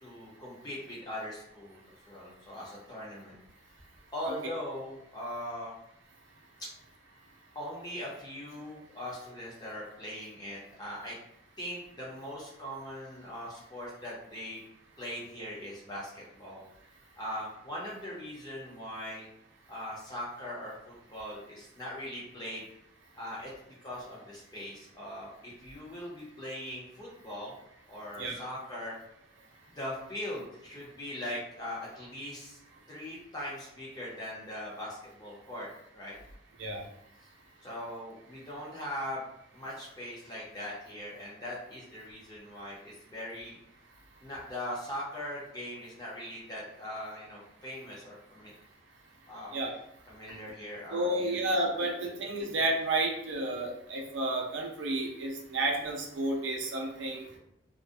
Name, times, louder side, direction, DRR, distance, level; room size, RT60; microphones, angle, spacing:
voice 1, 0.0-1.8 2.0-3.4 4.1-5.7 6.6-6.7 7.5-11.2 11.6-14.6 15.0-16.7 17.2-19.3 19.7-22.6 23.1-23.5 23.8-27.5 27.9-29.0 29.7-32.6 32.9-35.7 35.9-36.2 37.6-39.2 39.5-43.6 44.2-48.5 49.3-49.5 50.1-51.4 52.0-52.1, left 1 dB, 20° left, -5 dB, 0.7 m, -40 dB
voice 2, 50.9-57.4, right 2 dB, 70° right, 0 dB, 0.5 m, -31 dB
2.4 x 2.1 x 2.5 m, 0.75 s
head